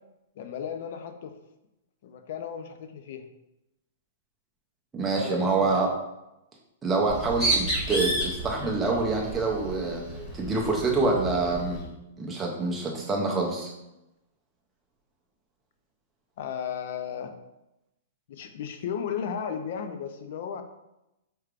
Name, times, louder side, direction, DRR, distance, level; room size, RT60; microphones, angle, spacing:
voice 1, 0.4-1.3 2.0-3.3 5.2-5.8 16.4-17.3 18.3-20.6, left 7 dB, 50° left, 7 dB, 0.4 m, -34 dB
voice 2, 4.9-5.9 6.8-10.0 10.3-11.8 12.2-13.7, right 3 dB, 10° right, -2 dB, 0.6 m, -26 dB
Bird, 7.0-11.9, right 1 dB, 20° left, 1.3 m, -31 dB
4.5 x 3.2 x 2.4 m, 0.91 s
hypercardioid pair, 170°, 0 cm